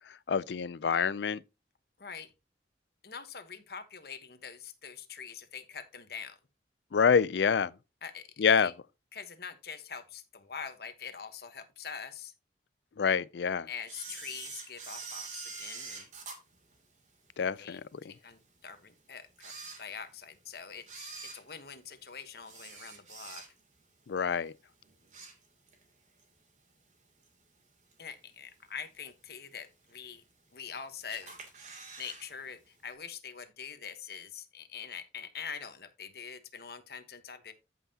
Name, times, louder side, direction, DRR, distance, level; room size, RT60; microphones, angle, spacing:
voice 1, 0.3-1.4 6.9-7.7 8.4-8.7 13.0-13.7 17.4-18.0 24.1-24.5, left 6 dB, 75° left, 0.4 m, -27 dB
voice 2, 2.0-2.3 3.0-6.4 8.0-8.7 9.1-12.3 13.7-16.1 17.6-19.5 19.8-23.4 28.0-30.2 30.5-31.4 32.0-37.5, left 6 dB, 55° left, 1.2 m, -44 dB
Camera, 13.9-17.4 17.9-18.0 18.7-18.8 19.3-20.3 20.8-23.8 24.2-24.5 24.8-25.9 26.2-26.3 27.2-27.3 27.9-28.3 28.7-28.8 29.0-29.1 29.3-29.4 30.1-30.7 31.1-32.3 32.5-32.6 32.9-33.0, right 4 dB, 40° right, 2.7 m, -45 dB
14.0 x 5.6 x 2.8 m
head